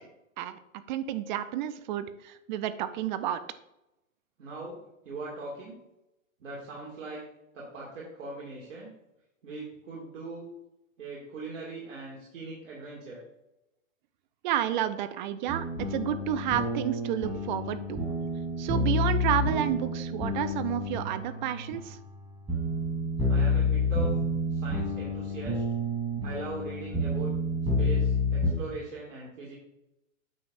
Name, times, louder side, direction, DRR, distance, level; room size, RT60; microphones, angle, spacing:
voice 1, 0.4-3.4 14.4-18.0 18.6-22.0, right 11 dB, 35° right, 12 dB, 0.5 m, -31 dB
voice 2, 4.4-4.8 5.0-5.8 6.4-7.2 7.5-8.9 9.4-10.4 11.0-13.2 23.3-24.1 24.5-25.6 26.2-27.3 27.8-29.6, right 3 dB, 65° right, -5 dB, 2.3 m, -40 dB
sound 1, 15.5-28.5, left 2 dB, 15° right, 3.0 m, -29 dB
9.1 x 6.9 x 2.5 m, 0.89 s
hypercardioid pair, 120°, 39 cm